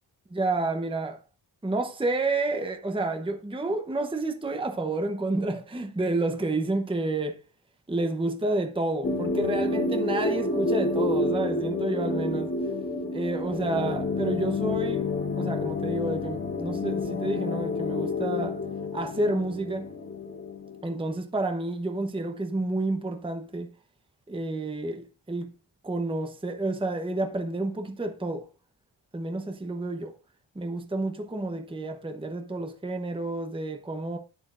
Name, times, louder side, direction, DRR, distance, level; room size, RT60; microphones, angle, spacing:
voice 1, 0.3-1.2 1.6-7.4 7.9-12.5 13.1-15.1 15.4-18.6 18.9-19.9 20.8-23.7 24.3-25.5 25.8-28.5 29.1-30.1 30.5-34.2, right 2 dB, 10° right, 0.9 m, -30 dB
icing-nicely, 9.0-21.0, left 3 dB, 25° left, 2.0 m, -29 dB
12.0 x 8.7 x 2.5 m
wide cardioid pair, 140°, 48 cm